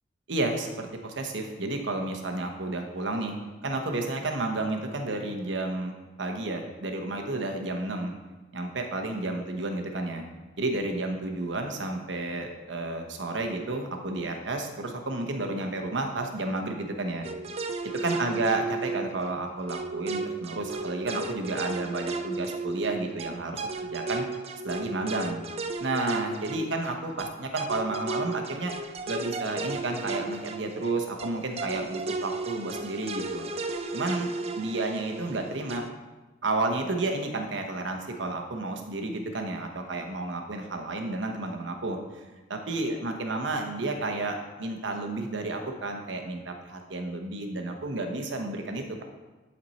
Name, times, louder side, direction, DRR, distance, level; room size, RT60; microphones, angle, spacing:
voice 1, 0.3-3.3 3.6-8.1 8.5-10.2 10.6-17.3 18.0-24.3 24.6-25.4 25.8-28.7 29.1-33.5 33.9-34.3 34.6-35.8 36.4-42.2 42.5-49.0, right 2 dB, 75° right, 4 dB, 1.1 m, -31 dB
sound 1, 17.2-35.9, right 3 dB, 35° right, 0.4 m, -34 dB
11.0 x 4.5 x 4.2 m, 1.2 s
head